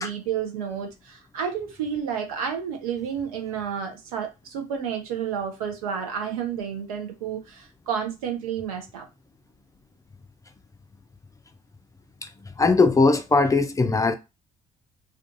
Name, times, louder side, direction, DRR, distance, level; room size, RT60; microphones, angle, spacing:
voice 1, 0.0-9.0, right 7 dB, 80° right, 0.6 m, -30 dB
voice 2, 12.6-14.1, left 3 dB, 15° left, 0.4 m, -19 dB
2.4 x 2.3 x 2.6 m
figure-of-eight pair, 45°, 19 cm